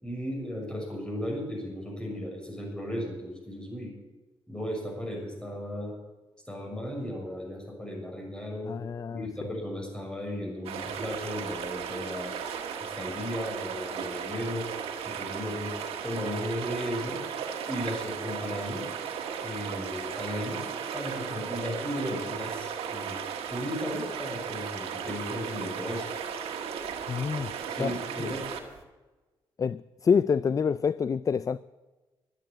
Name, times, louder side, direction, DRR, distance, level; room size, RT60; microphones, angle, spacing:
voice 1, 0.0-3.9 4.5-5.9 6.5-8.7 9.1-12.3 12.8-14.7 15.0-15.7 16.0-17.2 17.6-18.8 19.4-20.6 20.9-23.2 23.5-26.1 27.3-28.4, equal, 10° left, 6.5 m, -35 dB
voice 2, 8.6-9.3 27.1-27.5 27.8-28.3 29.6-31.6, left 6 dB, 35° left, 0.3 m, -27 dB
sound 1, 10.7-28.8, right 7 dB, 85° right, 1.5 m, -36 dB
12.0 x 9.2 x 8.8 m
cardioid pair, 65°, 10 cm